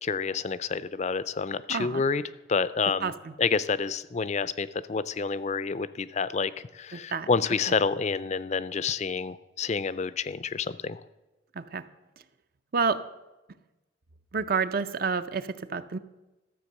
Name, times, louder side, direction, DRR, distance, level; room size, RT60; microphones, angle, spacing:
voice 1, 0.0-2.2 2.5-3.1 3.4-11.0, left 5 dB, 35° left, 16 dB, 0.4 m, -28 dB
voice 2, 1.7-2.0 3.0-3.3 6.9-7.3 11.5-11.8 12.7-13.0 14.3-16.0, right 5 dB, 50° right, 12 dB, 0.6 m, -29 dB
13.5 x 7.6 x 6.5 m, 1.1 s
head